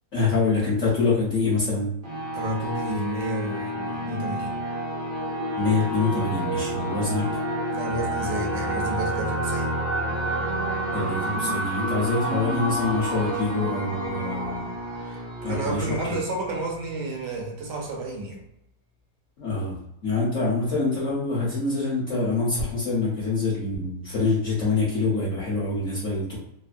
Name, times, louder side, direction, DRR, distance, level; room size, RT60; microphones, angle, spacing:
voice 1, 0.1-1.9 5.6-7.2 10.9-14.6 15.0-15.1 15.4-15.8 19.4-19.7 20.0-26.4, left 3 dB, 50° left, -9 dB, 1.0 m, -25 dB
sound 1, 2.0-17.4, right 1 dB, 55° right, 0.7 m, -29 dB
voice 2, 2.3-4.6 7.7-9.7 15.4-18.4, right 1 dB, 70° right, 0 dB, 1.3 m, -31 dB
3.4 x 2.0 x 2.4 m, 0.84 s
omnidirectional pair, 2.0 m